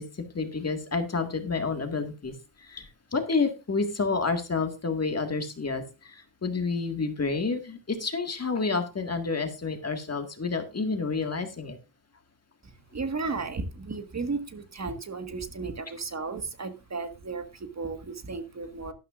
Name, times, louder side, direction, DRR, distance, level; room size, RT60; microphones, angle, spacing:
voice 1, 0.0-11.8, left 4 dB, 30° left, 6 dB, 1.9 m, -29 dB
voice 2, 12.6-18.9, right 4 dB, 35° right, 8 dB, 1.7 m, -34 dB
12.5 x 12.5 x 2.5 m, 0.28 s
wide cardioid pair, 150°, 47 cm